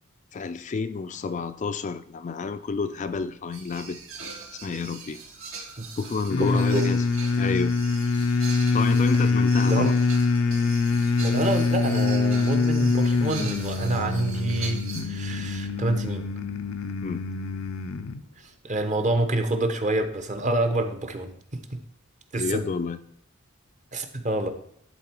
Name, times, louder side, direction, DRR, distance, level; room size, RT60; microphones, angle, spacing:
voice 1, 0.3-4.3 4.6-5.2 6.0-7.0 7.4-7.8 8.7-9.9 17.0-17.2 22.4-23.0, left 4 dB, 35° left, 10 dB, 0.4 m, -29 dB
sound 1, 3.5-15.1 19.3-19.4 19.8-19.9 21.1-21.2, right 4 dB, 75° right, 1.6 m, -41 dB
sound 2, 6.3-18.2, left 4 dB, 85° left, 0.6 m, -24 dB
voice 2, 6.4-6.9 9.7-10.0 11.2-16.3 18.6-21.8 22.3-22.6 23.9-24.5, right 2 dB, 35° right, 7 dB, 0.8 m, -27 dB
11.5 x 3.8 x 4.5 m, 0.70 s
head